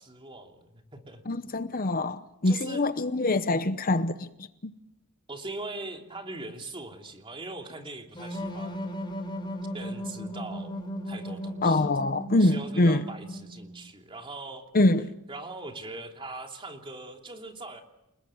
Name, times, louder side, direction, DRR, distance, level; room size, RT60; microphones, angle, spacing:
voice 1, 0.0-1.2 2.4-2.8 5.3-8.9 9.7-10.7 11.1-11.9 12.3-14.7 15.3-17.8, right 2 dB, 25° right, 3.1 m, -41 dB
voice 2, 1.3-4.3 11.6-13.0 14.7-15.1, left 2 dB, 40° left, 0.9 m, -24 dB
sound 1, 8.1-13.8, equal, 20° left, 5.1 m, -36 dB
30.0 x 19.5 x 7.2 m
head